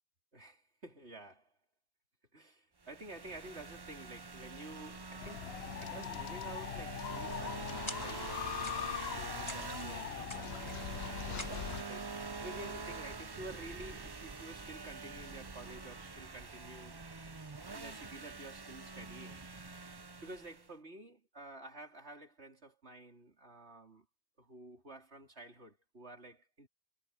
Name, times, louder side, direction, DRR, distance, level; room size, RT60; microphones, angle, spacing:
voice 1, 0.3-1.5 2.3-12.1 12.4-17.0 17.7-19.4 20.2-24.1 24.4-26.7, right 2 dB, 75° right, 4.1 m, -51 dB
sound 1, 2.8-20.7, right 4 dB, 25° right, 0.7 m, -45 dB
sound 2, 5.2-11.8, left 11 dB, 70° left, 0.8 m, -42 dB
sound 3, 7.9-8.3 8.6-9.1 9.5-9.9 10.3-11.0 11.4-12.0, left 1 dB, 25° left, 2.3 m, -47 dB
omnidirectional pair, 1.1 m